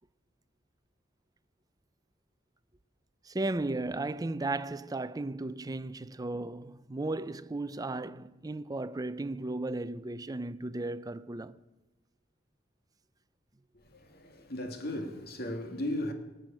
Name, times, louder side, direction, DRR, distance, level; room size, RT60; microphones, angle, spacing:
voice 1, 3.2-11.6, right 2 dB, 20° right, 0.5 m, -35 dB
voice 2, 13.7-16.1, left 1 dB, 55° left, 1.9 m, -36 dB
18.0 x 7.8 x 8.9 m
head